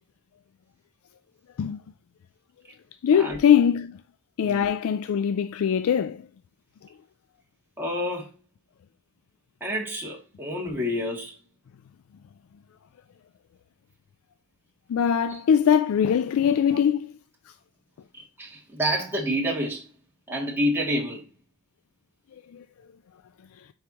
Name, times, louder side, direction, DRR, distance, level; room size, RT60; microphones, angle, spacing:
voice 1, 3.0-4.0 4.4-6.2 14.9-17.1 22.5-22.6, left 8 dB, 70° left, 0.3 m, -22 dB
voice 2, 7.8-8.4 9.6-11.4 15.2-15.4 18.1-19.9 20.3-21.3, equal, 10° right, 2.3 m, -28 dB
9.5 x 4.7 x 2.9 m
head